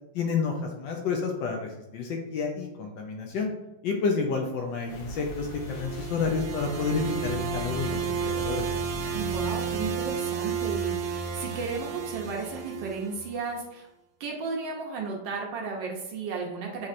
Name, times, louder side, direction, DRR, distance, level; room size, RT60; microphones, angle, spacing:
voice 1, 0.1-3.5 3.8-8.6, left 5 dB, 75° left, 2 dB, 1.2 m, -30 dB
sound 1, 4.9-9.9, left 4 dB, 90° left, 0.8 m, -40 dB
sound 2, 5.2-13.4, right 7 dB, 90° right, 1.5 m, -32 dB
voice 2, 9.1-13.9 14.2-16.9, right 4 dB, 70° right, 0 dB, 1.3 m, -34 dB
6.3 x 2.8 x 2.5 m, 0.92 s
omnidirectional pair, 2.3 m